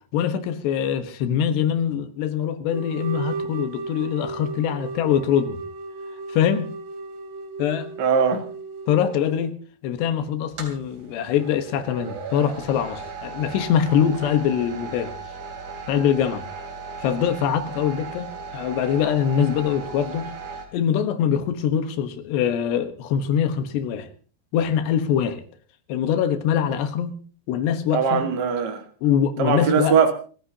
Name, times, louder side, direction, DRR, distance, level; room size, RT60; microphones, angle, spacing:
voice 1, 0.1-5.6 6.3-6.7 7.6-7.9 8.3-8.4 8.9-9.6 9.8-15.1 15.9-16.5 17.0-20.3 20.7-24.1 24.5-25.4 25.9-27.2 27.5-28.3 29.0-30.0, left 8 dB, 80° left, 3.4 m, -23 dB
sound 1, 2.7-9.5, right 4 dB, 85° right, 3.8 m, -35 dB
voice 2, 8.0-8.4 27.9-28.8 29.4-30.1, right 7 dB, 65° right, 1.0 m, -20 dB
sound 2, 10.5-20.7, right 5 dB, 50° right, 4.0 m, -37 dB
28.5 x 14.5 x 2.8 m
omnidirectional pair, 4.9 m